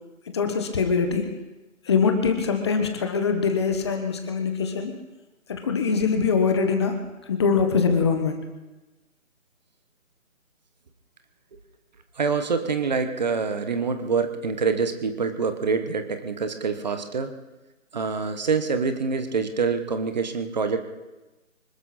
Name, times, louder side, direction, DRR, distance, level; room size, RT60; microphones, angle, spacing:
voice 1, 0.3-1.3 1.8-4.9 5.5-8.4, left 5 dB, 20° left, 6 dB, 1.2 m, -23 dB
voice 2, 12.2-17.3 17.9-20.8, right 5 dB, 30° right, 8 dB, 1.3 m, -26 dB
25.5 x 12.5 x 4.2 m, 1.1 s
figure-of-eight pair, 160°, 42 cm